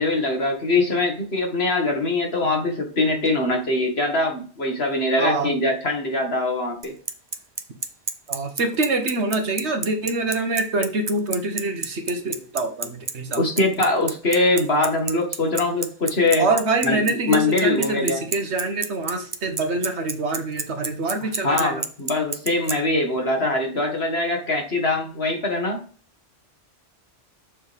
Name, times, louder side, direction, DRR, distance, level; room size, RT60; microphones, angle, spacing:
voice 1, 0.0-6.9 13.4-16.5 16.8-18.2 21.4-25.8, left 2 dB, 70° left, 2 dB, 2.2 m, -22 dB
voice 2, 5.2-5.6 8.3-13.4 16.4-21.8, right 3 dB, 85° right, 4 dB, 1.6 m, -25 dB
Bicycle, 6.8-22.7, right 3 dB, 25° right, 0.7 m, -27 dB
7.1 x 6.9 x 3.5 m, 0.41 s
omnidirectional pair, 1.1 m